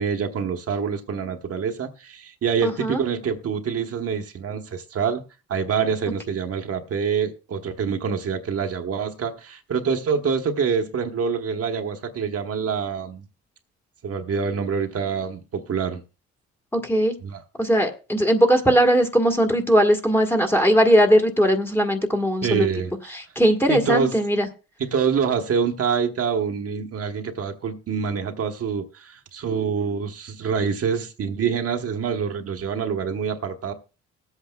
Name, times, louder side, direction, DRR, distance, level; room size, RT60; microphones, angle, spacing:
voice 1, 0.0-5.2 5.5-13.3 14.0-16.0 17.2-17.4 22.4-22.9 23.7-24.1 24.8-33.7, right 6 dB, 50° right, 1.1 m, -26 dB
voice 2, 2.6-3.0 16.7-17.1 17.6-22.7 23.1-24.5, equal, 10° left, 1.4 m, -19 dB
20.0 x 8.1 x 2.2 m
cardioid pair, 90°, 30 cm